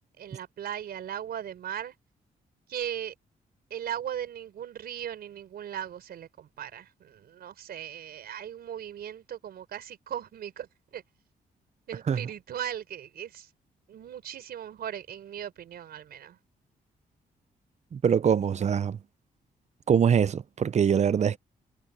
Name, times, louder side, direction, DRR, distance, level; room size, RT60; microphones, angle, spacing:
voice 1, 0.2-1.9 2.7-3.1 3.7-11.0 11.9-13.5 13.9-16.4, right 10 dB, 80° right, 4.2 m, -38 dB
voice 2, 17.9-19.0 19.9-21.4, right 7 dB, 45° right, 0.8 m, -23 dB
cardioid pair, 100°, 16 cm